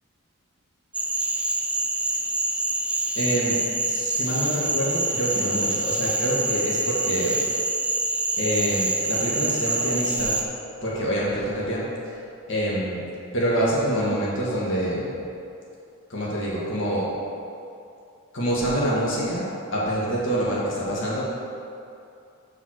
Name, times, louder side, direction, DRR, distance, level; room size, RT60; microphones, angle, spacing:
Cricket / Frog, 0.9-10.4, right 2 dB, 5° right, 0.3 m, -26 dB
voice 1, 3.2-3.6 3.9-7.4 8.4-10.4 10.8-11.9 12.5-13.1 13.3-15.2 16.1-17.1 18.3-21.2, right 1 dB, 60° left, -6 dB, 1.6 m, -26 dB
7.1 x 4.3 x 6.4 m, 2.6 s
head